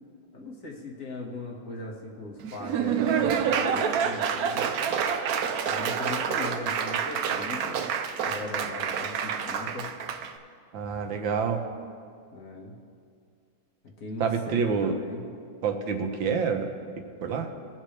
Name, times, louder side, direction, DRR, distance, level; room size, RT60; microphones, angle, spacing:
voice 1, 0.3-4.7 5.7-7.8 8.2-9.9 12.3-12.8 14.0-15.3, left 2 dB, 45° left, -2 dB, 1.9 m, -39 dB
Laughter / Applause, 2.4-10.3, right 7 dB, 65° right, 0.9 m, -28 dB
voice 2, 10.7-11.6 14.2-15.0 15.6-16.7 17.2-17.5, right 6 dB, 85° right, 5 dB, 1.7 m, -27 dB
22.0 x 7.5 x 3.3 m, 2.3 s
omnidirectional pair, 2.1 m